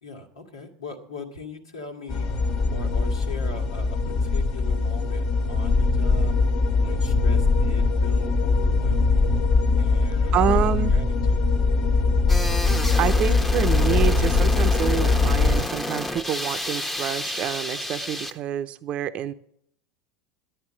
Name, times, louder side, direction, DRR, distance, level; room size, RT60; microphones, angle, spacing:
voice 1, 0.0-2.3 2.7-6.3 6.8-9.4 9.8-11.5, left 2 dB, 80° left, 0 dB, 1.9 m, -40 dB
sound 1, 2.1-15.6, left 3 dB, 40° left, 1.6 m, -21 dB
voice 2, 10.3-10.9 13.0-19.3, right 10 dB, 40° right, 11 dB, 0.7 m, -27 dB
sound 2, 12.3-18.3, left 1 dB, 10° left, 1.1 m, -30 dB
11.5 x 9.3 x 7.5 m, 0.68 s
hypercardioid pair, 85°, 3 cm